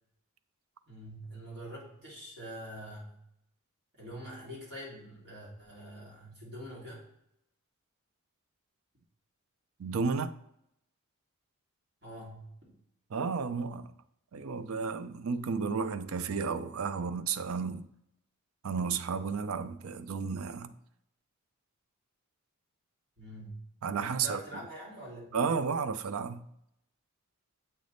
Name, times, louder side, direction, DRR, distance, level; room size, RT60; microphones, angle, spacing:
voice 1, 0.9-3.1 3.9-7.0 12.0-12.7 16.9-17.1 23.2-23.6 24.0-25.4, right 1 dB, 50° right, 2.5 m, -45 dB
voice 2, 9.8-10.4 13.1-13.9 14.3-17.9 18.6-20.7 23.8-24.4 25.3-26.5, right 5 dB, 75° right, 0.4 m, -32 dB
7.6 x 3.4 x 3.9 m
head